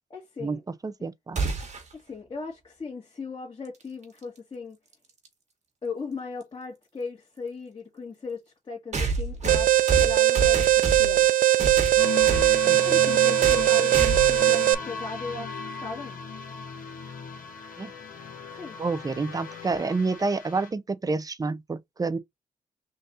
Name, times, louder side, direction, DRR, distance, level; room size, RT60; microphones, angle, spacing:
voice 1, 0.1-0.6 1.9-4.8 5.8-11.3 12.8-16.2 18.6-18.8, left 4 dB, 35° left, 1.7 m, -38 dB
voice 2, 0.8-1.4 12.6-12.9 17.8-17.9 18.8-22.2, right 3 dB, 25° right, 0.6 m, -29 dB
sound 1, 1.4-1.9 4.0-4.1 5.2-5.3 8.9-11.2 11.6-12.5 13.4-13.7 13.9-14.4, right 4 dB, 55° right, 1.5 m, -28 dB
Alarm, 9.5-14.7, right 13 dB, 75° right, 0.4 m, -20 dB
sound 2, 12.0-20.7, left 5 dB, 75° left, 1.3 m, -36 dB
3.8 x 2.5 x 3.9 m
cardioid pair, 90°, 14 cm